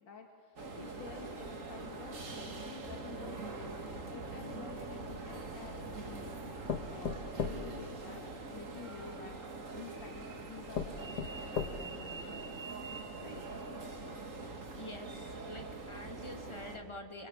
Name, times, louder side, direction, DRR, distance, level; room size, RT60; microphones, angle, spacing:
voice 1, 0.0-9.4 9.7-12.9 13.2-13.4, left 5 dB, 80° left, 2 dB, 2.6 m, -51 dB
sound 1, 0.6-16.8, right 3 dB, 45° right, 2.3 m, -43 dB
sound 2, 5.0-5.9 6.7-8.6 9.6-9.7 10.3-10.4 10.7-12.1 12.6-12.7 13.0-13.1, left 6 dB, 60° left, 1.7 m, -38 dB
voice 2, 14.7-17.3, left 1 dB, 15° left, 3 dB, 2.6 m, -47 dB
25.0 x 24.5 x 8.6 m, 2.3 s
omnidirectional pair, 2.0 m